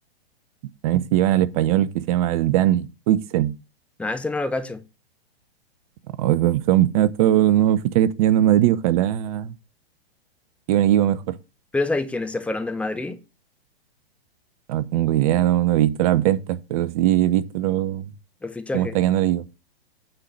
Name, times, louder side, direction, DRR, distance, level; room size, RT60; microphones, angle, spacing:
voice 1, 0.8-3.5 6.2-9.5 10.7-11.4 14.7-18.1 18.7-19.5, right 12 dB, 35° right, 0.6 m, -20 dB
voice 2, 4.0-4.8 11.7-13.2 18.4-18.9, left 2 dB, 5° left, 0.5 m, -26 dB
9.0 x 3.8 x 6.6 m
figure-of-eight pair, 115°, 31 cm